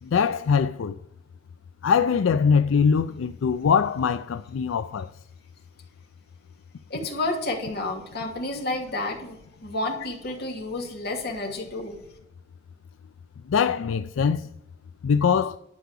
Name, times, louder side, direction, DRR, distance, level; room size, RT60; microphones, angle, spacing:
voice 1, 0.0-1.0 1.8-5.1 13.5-14.5 15.0-15.6, left 6 dB, 85° left, 0.4 m, -22 dB
voice 2, 6.9-12.0, left 2 dB, 55° left, 2.7 m, -30 dB
11.5 x 4.8 x 8.2 m
head